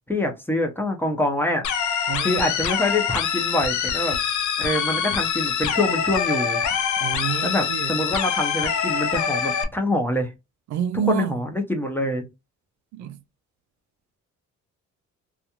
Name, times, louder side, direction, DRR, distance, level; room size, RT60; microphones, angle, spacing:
voice 1, 0.1-1.7 2.2-4.2 4.6-6.6 7.4-10.3 11.1-12.3, left 1 dB, 5° left, 0.7 m, -25 dB
sound 1, 1.6-9.6, left 7 dB, 70° left, 0.6 m, -25 dB
voice 2, 2.1-2.5 7.0-7.9 10.7-11.4 12.9-13.2, right 10 dB, 70° right, 0.5 m, -28 dB
2.4 x 2.3 x 2.8 m
cardioid pair, 90°, 30 cm